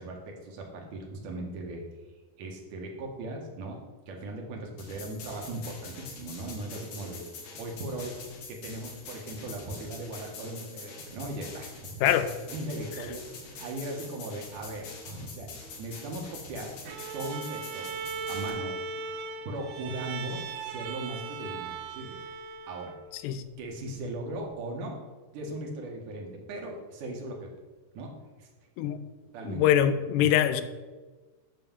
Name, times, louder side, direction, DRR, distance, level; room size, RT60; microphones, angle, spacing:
voice 1, 0.0-1.8 2.4-3.8 4.1-7.2 7.6-8.1 8.5-12.1 12.5-16.7 17.1-17.9 18.3-18.8 19.5-22.2 22.7-22.9 23.6-25.0 25.3-27.5 27.9-28.1 28.4-28.5 29.3-29.6, right 2 dB, 60° right, 1 dB, 2.6 m, -38 dB
sound 1, 4.8-18.5, left 4 dB, 60° left, 3.2 m, -45 dB
Bowed string instrument, 16.8-23.1, right 5 dB, 90° right, 1.8 m, -38 dB
voice 2, 29.5-30.6, left 11 dB, 85° left, 12 dB, 2.8 m, -23 dB
9.4 x 4.5 x 7.3 m, 1.3 s
omnidirectional pair, 4.7 m